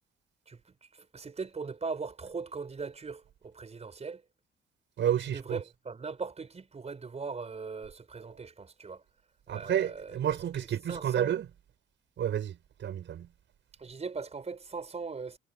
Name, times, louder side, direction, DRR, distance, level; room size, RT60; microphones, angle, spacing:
voice 1, 0.5-4.2 5.0-9.0 9.5-11.4 13.8-15.4, right 4 dB, 35° right, 4.6 m, -40 dB
voice 2, 5.0-5.6 9.5-11.5 12.2-13.3, right 10 dB, 65° right, 6.4 m, -30 dB
cardioid pair, 90°, 20 cm